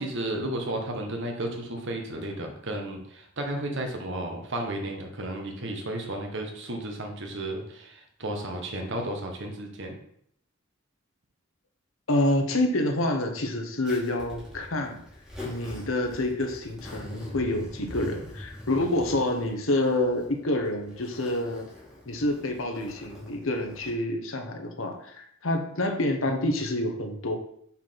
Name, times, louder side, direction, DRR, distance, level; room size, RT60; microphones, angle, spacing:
voice 1, 0.0-10.0, right 1 dB, 65° right, 3 dB, 1.4 m, -33 dB
voice 2, 12.1-15.0 15.4-21.7 22.1-27.4, left 1 dB, 75° left, 3 dB, 1.2 m, -27 dB
Zipper (clothing), 13.9-23.9, left 1 dB, 5° right, 2.4 m, -43 dB
5.7 x 4.7 x 5.8 m, 0.70 s
head